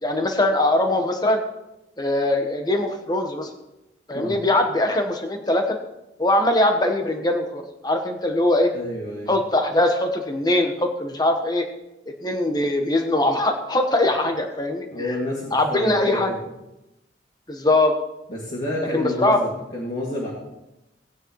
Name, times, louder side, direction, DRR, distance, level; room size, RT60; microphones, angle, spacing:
voice 1, 0.0-1.4 2.0-3.5 4.1-5.8 6.2-8.7 9.3-11.6 12.2-15.1 15.5-16.3 17.5-17.9 18.9-19.4, left 1 dB, 20° left, 4 dB, 1.3 m, -21 dB
voice 2, 8.7-9.3 14.9-16.4 18.3-20.3, left 1 dB, 40° left, -6 dB, 2.5 m, -29 dB
18.0 x 9.8 x 3.2 m, 0.93 s
head